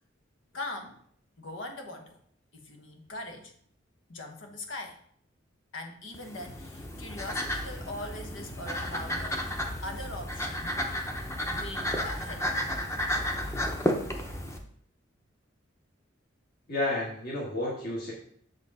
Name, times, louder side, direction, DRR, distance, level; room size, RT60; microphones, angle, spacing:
voice 1, 0.5-1.0 1.4-2.2 2.5-3.5 4.1-5.0 5.7-9.5 9.8-10.8 11.5-12.5, left 2 dB, 80° left, 4 dB, 1.2 m, -41 dB
sound 1, 6.1-14.6, equal, 15° left, 0.8 m, -32 dB
voice 2, 16.7-18.1, left 2 dB, 50° left, -5 dB, 1.7 m, -31 dB
6.9 x 5.0 x 4.8 m, 0.63 s
head